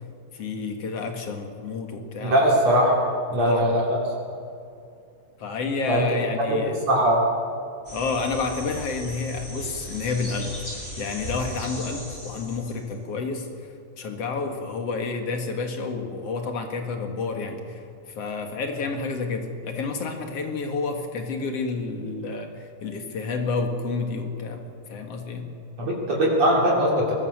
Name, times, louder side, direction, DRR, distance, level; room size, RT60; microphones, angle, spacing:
voice 1, 0.3-2.4 3.3-3.9 5.4-6.8 7.9-10.6 11.0-13.5 14.0-24.6 24.9-25.5, left 4 dB, 50° left, 4 dB, 2.7 m, -30 dB
voice 2, 2.2-3.0 3.3-4.0 5.9-6.0 6.5-6.6 6.9-7.3 25.8-27.1, right 1 dB, 50° right, -3 dB, 4.0 m, -20 dB
sound 1, 7.8-12.9, equal, 15° left, 6.9 m, -37 dB
22.5 x 20.0 x 6.6 m, 2.5 s
omnidirectional pair, 3.8 m